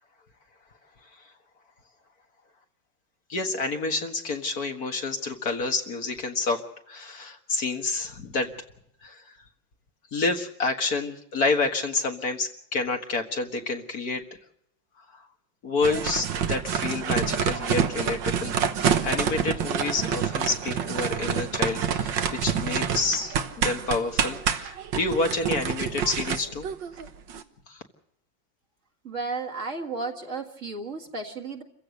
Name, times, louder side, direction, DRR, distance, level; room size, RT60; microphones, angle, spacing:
voice 1, 3.3-6.6 6.9-8.5 9.0-9.3 10.1-14.2 15.1-15.2 15.6-18.5 19.0-26.7 27.7-27.8, left 3 dB, 55° left, 4 dB, 2.1 m, -29 dB
sound 1, 15.8-27.4, right 7 dB, 75° right, 1.9 m, -27 dB
voice 2, 29.0-31.6, right 3 dB, 45° right, 2 dB, 2.1 m, -33 dB
28.0 x 15.5 x 6.5 m, 0.74 s
omnidirectional pair, 2.0 m